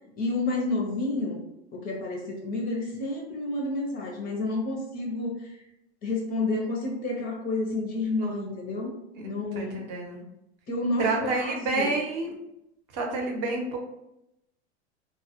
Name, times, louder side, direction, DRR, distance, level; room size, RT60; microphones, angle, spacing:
voice 1, 0.2-1.4 1.7-5.6 6.0-8.9 9.2-9.8 10.7-12.0, left 2 dB, 25° left, 0 dB, 0.4 m, -30 dB
voice 2, 9.2-10.2 11.0-12.3 12.9-13.8, right 3 dB, 50° right, 1 dB, 0.7 m, -29 dB
2.1 x 2.1 x 2.8 m, 0.85 s
hypercardioid pair, 115°, 34 cm